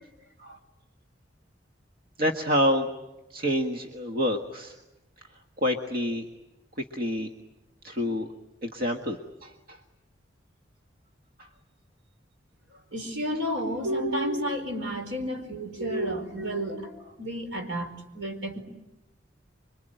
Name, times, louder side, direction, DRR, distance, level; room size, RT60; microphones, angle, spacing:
voice 1, 2.2-2.9 3.3-4.7 5.6-6.2 6.9-7.3 7.8-8.3 8.6-9.5, equal, 50° right, 4 dB, 1.7 m, -27 dB
voice 2, 12.9-18.6, equal, 70° right, 5 dB, 4.7 m, -31 dB
26.5 x 24.0 x 9.1 m, 0.99 s
head